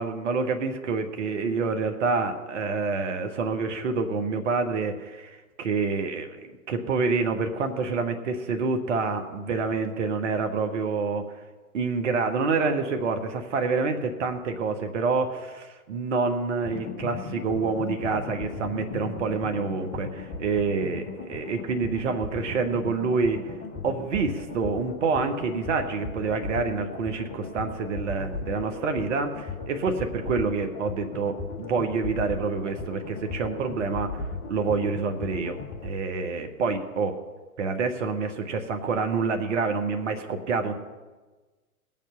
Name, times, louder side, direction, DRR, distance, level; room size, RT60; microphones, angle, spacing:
voice 1, 0.0-11.2 11.7-23.5 23.8-35.6 35.8-37.1 37.6-40.7, right 4 dB, 55° right, 7 dB, 1.5 m, -27 dB
sound 1, 16.6-35.9, left 4 dB, 25° left, 1.3 m, -37 dB
18.5 x 7.5 x 5.6 m, 1.3 s
figure-of-eight pair, 110°, 45 cm